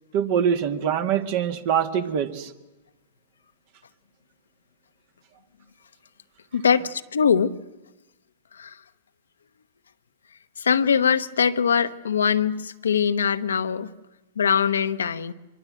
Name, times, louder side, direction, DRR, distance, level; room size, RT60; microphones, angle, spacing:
voice 1, 0.1-2.5, right 8 dB, 55° right, 7 dB, 2.1 m, -24 dB
voice 2, 6.5-7.6 8.6-8.8 10.6-13.9 14.4-15.3, left 7 dB, 80° left, 10 dB, 1.0 m, -22 dB
25.5 x 22.5 x 7.8 m, 1.1 s
hypercardioid pair, 110°, 0 cm